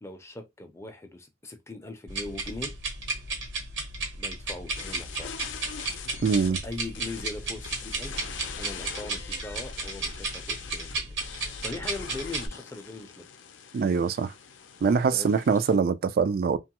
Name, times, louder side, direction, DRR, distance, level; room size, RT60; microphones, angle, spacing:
voice 1, 0.0-2.8 4.2-5.3 6.6-8.2 8.6-13.3 15.1-15.3, left 2 dB, 15° left, 0.5 m, -40 dB
sound 1, 2.1-12.5, right 3 dB, 75° right, 1.1 m, -34 dB
sound 2, 4.7-15.8, left 7 dB, 80° left, 0.5 m, -43 dB
voice 2, 6.2-6.6 13.7-14.3 14.8-16.6, right 5 dB, 55° right, 0.3 m, -23 dB
3.0 x 2.3 x 2.9 m
head